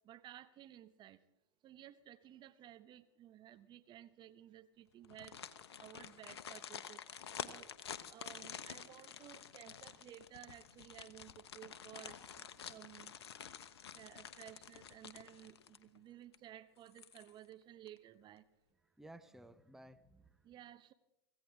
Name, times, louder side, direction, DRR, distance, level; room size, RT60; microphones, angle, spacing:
voice 1, 0.0-1.2 1.6-5.4 5.8-7.0 7.4-7.7 8.1-12.2 12.7-13.1 13.9-18.4 20.4-20.9, right 12 dB, 30° right, 12 dB, 0.8 m, -55 dB
sound 1, 5.0-16.0 16.3-16.4 16.9-17.5 17.9-18.0, left 8 dB, 70° left, 1.0 m, -50 dB
voice 2, 12.0-12.7 19.0-20.4, right 1 dB, 5° right, 11 dB, 0.8 m, -58 dB
25.0 x 15.5 x 3.6 m, 0.86 s
figure-of-eight pair, 95°, 14 cm